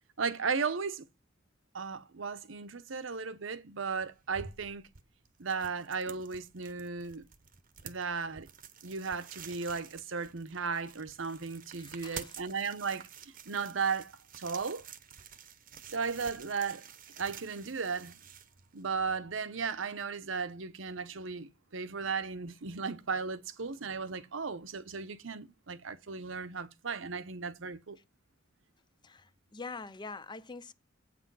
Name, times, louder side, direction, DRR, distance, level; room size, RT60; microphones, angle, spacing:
voice 1, 0.2-1.1 1.7-4.9 5.4-7.2 7.8-8.5 8.8-13.1 13.5-14.9 15.9-16.9 17.2-18.1 18.7-28.0, right 5 dB, 75° right, 0.8 m, -35 dB
removing plastic, 4.0-19.1, right 7 dB, 45° right, 0.9 m, -50 dB
voice 2, 11.8-12.4 29.0-30.7, left 4 dB, 25° left, 0.5 m, -44 dB
8.3 x 6.1 x 5.4 m
head